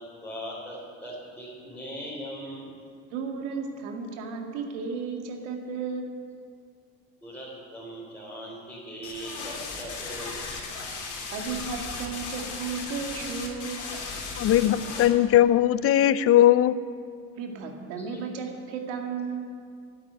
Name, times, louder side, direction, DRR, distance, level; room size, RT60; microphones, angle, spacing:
voice 1, 0.0-2.7 7.2-10.5 11.1-11.2 18.0-18.2, equal, 5° left, -8 dB, 3.8 m, -40 dB
voice 2, 3.1-6.1 11.3-13.8 17.4-19.4, right 5 dB, 85° right, 3 dB, 2.1 m, -34 dB
sound 1, 9.0-15.1, left 4 dB, 60° left, 3.5 m, -36 dB
voice 3, 14.4-16.8, left 12 dB, 40° left, 17 dB, 0.5 m, -19 dB
12.0 x 9.0 x 9.8 m, 2.2 s
supercardioid pair, 105°, 34 cm